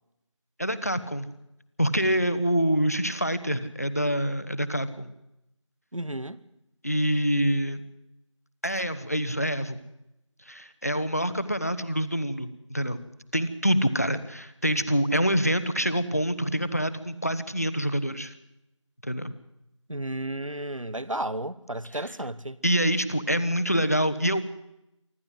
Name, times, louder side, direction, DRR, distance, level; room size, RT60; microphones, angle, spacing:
voice 1, 0.6-1.3 1.8-5.1 6.8-7.8 8.6-9.8 10.4-13.0 13.3-18.3 19.0-19.3 21.9-22.1 22.6-24.4, equal, 30° left, 1.0 m, -26 dB
voice 2, 5.9-6.4 19.9-22.6, right 1 dB, 90° right, 1.4 m, -33 dB
24.5 x 14.5 x 7.9 m
figure-of-eight pair, 175°, 16 cm